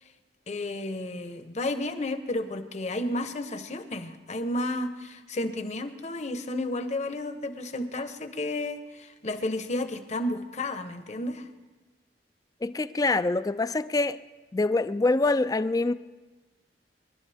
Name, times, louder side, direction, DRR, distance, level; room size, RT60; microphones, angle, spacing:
voice 1, 0.5-11.5, left 1 dB, 40° left, 9 dB, 0.9 m, -32 dB
voice 2, 12.6-14.2 14.5-15.9, left 2 dB, 20° left, 14 dB, 0.4 m, -25 dB
26.5 x 11.5 x 3.5 m, 1.2 s
head